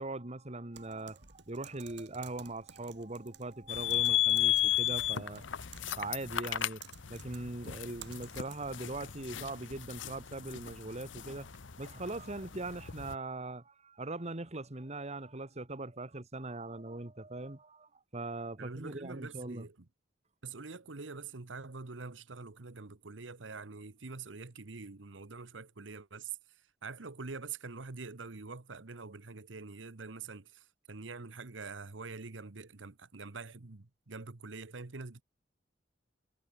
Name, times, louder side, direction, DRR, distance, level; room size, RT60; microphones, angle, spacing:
voice 1, 0.0-5.4 6.0-6.8 7.1-11.5 11.8-19.7, right 2 dB, 35° right, 1.8 m, -41 dB
Typing, 0.7-8.9, right 9 dB, 65° right, 6.0 m, -55 dB
sound 1, 3.7-13.1, left 13 dB, 85° left, 1.0 m, -34 dB
voice 2, 18.6-19.9 20.4-35.2, right 4 dB, 90° right, 1.2 m, -45 dB
head